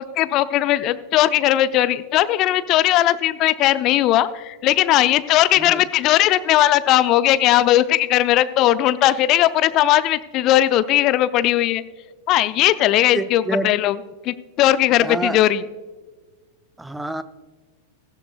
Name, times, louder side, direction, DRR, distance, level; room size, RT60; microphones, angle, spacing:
voice 1, 0.0-11.8 12.3-14.0 14.2-15.6, left 13 dB, 40° left, 15 dB, 0.5 m, -18 dB
voice 2, 13.1-13.7 15.0-15.4 16.8-17.2, right 1 dB, 5° right, 13 dB, 0.7 m, -26 dB
16.0 x 16.0 x 2.3 m, 1.3 s
figure-of-eight pair, 90°, 0 cm